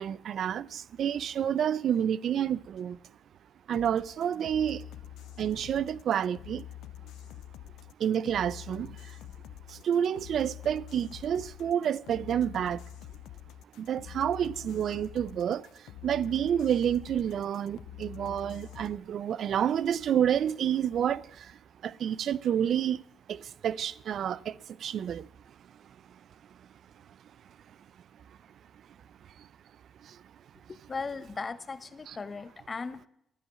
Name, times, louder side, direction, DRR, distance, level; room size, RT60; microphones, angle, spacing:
voice 1, 0.0-3.0 3.7-4.8 5.4-6.7 8.0-9.2 9.7-12.8 13.8-23.0 23.3-25.3 29.4-29.5 30.0-30.2 32.1-32.2, right 9 dB, 65° right, 0.5 m, -29 dB
sound 1, 3.7-19.0, left 13 dB, 85° left, 0.5 m, -46 dB
voice 2, 30.9-33.1, left 4 dB, 35° left, 0.8 m, -37 dB
12.0 x 10.0 x 7.3 m
cardioid pair, 90°, 0 cm